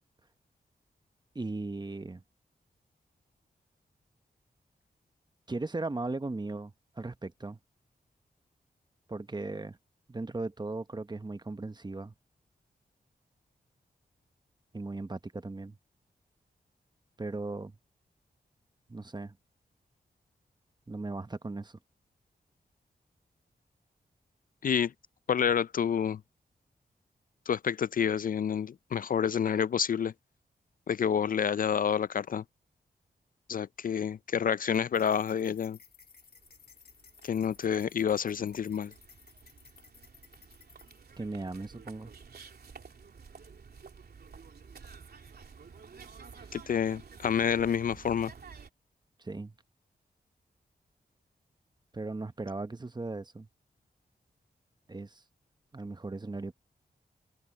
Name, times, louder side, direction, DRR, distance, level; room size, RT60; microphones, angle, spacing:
voice 1, 1.3-2.2 5.5-7.6 9.1-9.8 10.1-12.1 14.7-15.8 17.2-17.8 18.9-19.4 20.9-21.8 41.2-42.1 46.4-46.5 49.2-49.5 51.9-53.5 54.9-55.2 55.7-56.5, right 2 dB, 25° right, 1.0 m, -37 dB
voice 2, 24.6-24.9 25.3-26.2 27.5-30.1 30.9-32.4 33.5-35.8 37.2-38.9 46.5-48.3, left 8 dB, 55° left, 0.4 m, -28 dB
sound 1, 34.7-41.2, left 6 dB, 75° left, 5.6 m, -58 dB
sound 2, 35.9-36.0 36.2-48.7, right 5 dB, 70° right, 3.3 m, -52 dB
cardioid pair, 60°, 17 cm